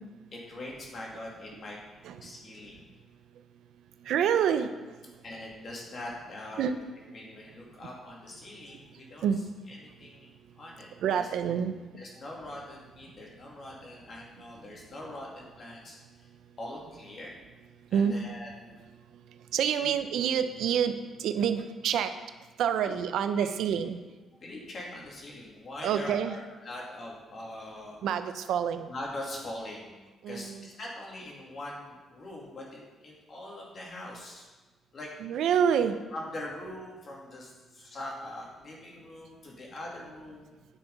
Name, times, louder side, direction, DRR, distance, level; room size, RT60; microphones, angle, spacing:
voice 1, 0.3-1.8 2.2-2.9 5.2-6.7 7.1-9.3 9.7-11.3 12.0-16.3 16.6-17.3 17.9-18.8 19.7-19.9 22.8-23.0 24.4-28.0 28.9-29.9 30.3-34.5 34.9-35.1 36.1-40.5, left 1 dB, 40° left, -2 dB, 2.6 m, -42 dB
voice 2, 4.1-4.7 6.6-6.7 9.2-9.4 11.0-11.7 17.9-18.2 19.5-22.1 22.6-24.0 25.8-26.4 28.0-28.9 30.2-30.7 35.2-36.0, right 8 dB, 80° right, 9 dB, 0.6 m, -27 dB
9.6 x 6.9 x 5.4 m, 1.2 s
cardioid pair, 140°, 0 cm